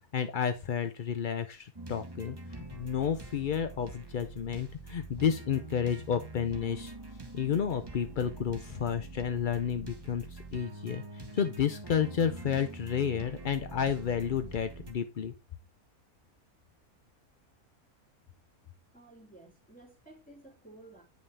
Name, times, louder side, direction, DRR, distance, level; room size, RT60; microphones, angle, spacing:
voice 1, 0.1-2.4 2.7-6.9 7.3-15.3, left 8 dB, 65° left, 0.5 m, -31 dB
sound 1, 1.8-14.9, right 2 dB, 20° right, 1.0 m, -45 dB
voice 2, 18.9-21.0, right 2 dB, 5° left, 2.9 m, -54 dB
9.0 x 5.5 x 3.3 m
omnidirectional pair, 1.6 m